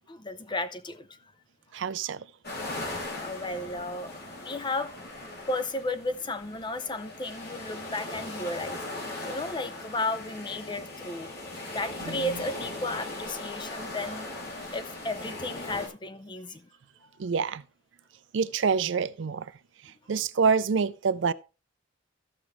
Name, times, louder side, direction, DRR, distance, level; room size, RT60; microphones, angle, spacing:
voice 1, 0.1-1.2 2.9-5.0 5.5-8.8 9.2-11.3 11.7-14.3 14.7-16.7, left 2 dB, 25° left, 0.6 m, -34 dB
voice 2, 1.7-2.2 12.1-12.2 17.2-17.6 18.3-19.5 20.1-21.3, right 5 dB, 65° right, 0.4 m, -26 dB
sound 1, 2.4-15.9, left 2 dB, 55° left, 2.6 m, -39 dB
14.5 x 6.1 x 3.1 m
head